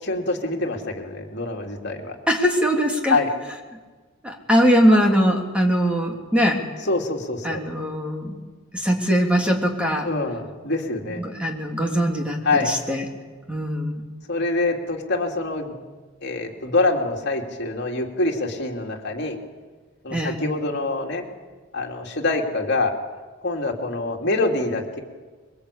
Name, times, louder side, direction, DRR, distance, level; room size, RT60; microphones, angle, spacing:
voice 1, 0.0-2.1 3.1-3.3 6.9-7.6 10.0-11.2 12.4-12.7 14.3-15.7 16.2-19.4 20.0-21.2 21.7-22.9 23.4-25.0, left 2 dB, 55° left, 1 dB, 3.0 m, -25 dB
voice 2, 2.3-3.2 4.2-6.6 7.4-8.4 8.7-10.1 11.1-13.0 13.5-14.0 20.1-20.4, equal, 5° right, 0 dB, 3.1 m, -21 dB
26.0 x 22.5 x 8.6 m, 1.4 s
head